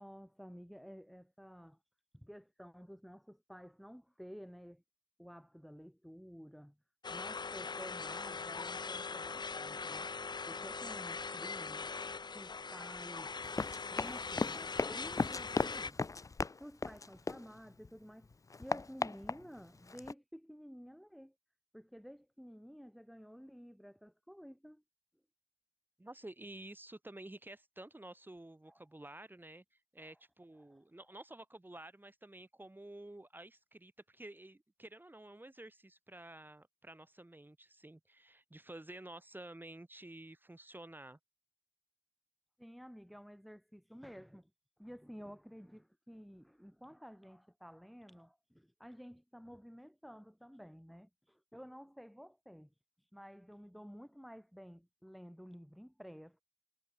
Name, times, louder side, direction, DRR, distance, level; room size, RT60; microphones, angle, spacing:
voice 1, 0.0-1.8 2.1-4.8 5.2-6.8 7.1-10.1 10.5-11.9 12.3-13.4 13.9-16.1 16.6-18.3 18.6-21.3 21.7-24.8 28.7-29.1 30.0-30.2 30.6-31.1 42.6-44.5 44.8-52.7 53.1-56.4, equal, ahead, 6.0 m, -52 dB
sound 1, 7.0-15.9, left 4 dB, 75° left, 0.9 m, -41 dB
Run, 13.4-17.9 18.2-20.1, left 4 dB, 45° left, 0.5 m, -37 dB
voice 2, 26.0-29.6 29.9-41.2, right 1 dB, 25° right, 7.2 m, -51 dB
wide cardioid pair, 55°, 7 cm